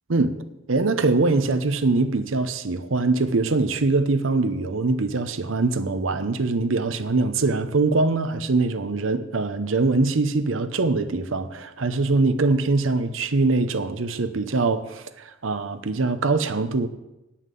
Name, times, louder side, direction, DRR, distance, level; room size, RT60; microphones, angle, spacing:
voice 1, 0.7-16.9, right 3 dB, 85° right, 0.8 m, -23 dB
9.3 x 5.8 x 8.3 m
head